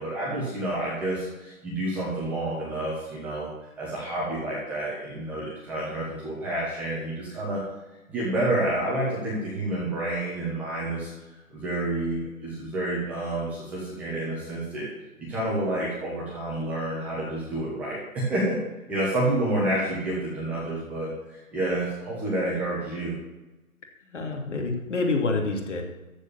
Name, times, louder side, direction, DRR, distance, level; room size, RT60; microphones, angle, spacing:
voice 1, 0.0-3.5 3.8-7.6 8.1-11.1 11.5-14.9 15.2-18.6 18.9-23.1, right 1 dB, 5° right, -8 dB, 1.3 m, -29 dB
voice 2, 24.1-25.8, left 3 dB, 55° left, 2 dB, 2.9 m, -27 dB
14.0 x 4.9 x 8.6 m, 1.1 s
hypercardioid pair, 165°, 43 cm